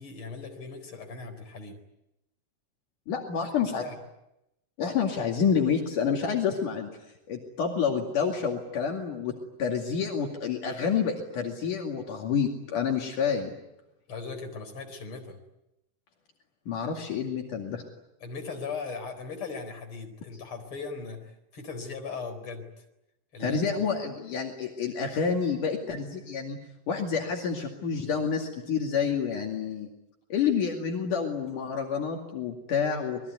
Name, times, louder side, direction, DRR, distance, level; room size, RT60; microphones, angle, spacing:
voice 1, 0.0-1.8 3.6-4.0 14.1-15.4 18.2-22.8 23.3-23.6, left 4 dB, 40° left, 5 dB, 5.0 m, -39 dB
voice 2, 3.1-3.8 4.8-6.9 7.3-9.3 9.6-13.5 16.7-17.8 23.4-26.6 26.9-29.9 30.3-33.2, left 6 dB, 70° left, 1 dB, 3.9 m, -28 dB
28.0 x 21.5 x 9.5 m, 0.88 s
omnidirectional pair, 3.8 m